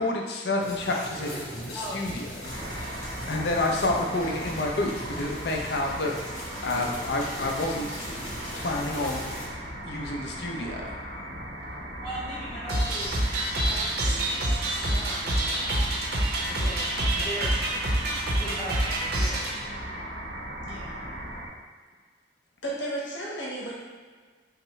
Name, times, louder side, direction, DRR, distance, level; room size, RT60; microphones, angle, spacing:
voice 1, 0.0-1.4 1.7-2.5 3.3-6.1 6.6-7.9 8.5-9.2 9.8-11.0, left 2 dB, 65° left, 1 dB, 0.6 m, -29 dB
sound 1, 0.6-9.5, equal, 45° left, 1.4 m, -39 dB
voice 2, 1.7-2.1 12.0-13.1 13.6-16.0 16.6-17.5 18.4-19.7, equal, ahead, -10 dB, 0.5 m, -39 dB
sound 2, 2.4-21.5, right 1 dB, 80° right, 1.0 m, -38 dB
sound 3, 12.7-19.5, right 1 dB, 55° right, 0.7 m, -27 dB
voice 3, 16.5-17.3 20.6-20.9 22.6-23.7, right 1 dB, 80° left, -6 dB, 1.3 m, -35 dB
5.7 x 2.0 x 3.2 m, 1.5 s
head